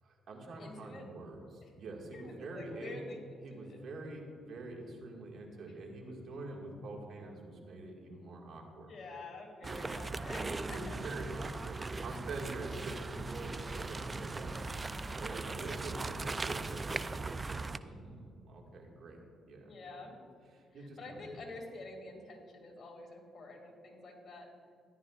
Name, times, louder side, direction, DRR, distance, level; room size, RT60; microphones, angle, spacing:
voice 1, 0.0-3.0 3.4-8.9 9.6-10.0 10.6-19.2 19.5-20.1 20.5-21.4, right 2 dB, 65° right, 0 dB, 1.9 m, -46 dB
voice 2, 0.6-1.0 1.6-1.7 2.1-3.8 8.9-11.0 19.7-20.2 20.8-24.5, left 2 dB, 50° left, 1 dB, 2.3 m, -48 dB
sound 1, 9.6-17.8, right 3 dB, 25° right, 0.4 m, -39 dB
14.0 x 11.0 x 2.4 m, 2.3 s
cardioid pair, 90°, 0 cm